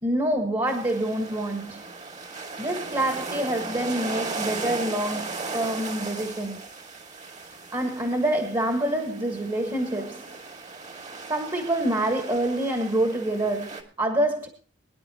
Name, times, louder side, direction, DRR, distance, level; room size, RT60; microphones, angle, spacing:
voice 1, 0.0-1.9 2.6-6.6 7.7-10.3 11.3-14.5, right 1 dB, 25° right, 1.5 m, -26 dB
sound 1, 0.7-13.8, right 3 dB, 40° right, 2.1 m, -37 dB
23.0 x 10.0 x 2.9 m
head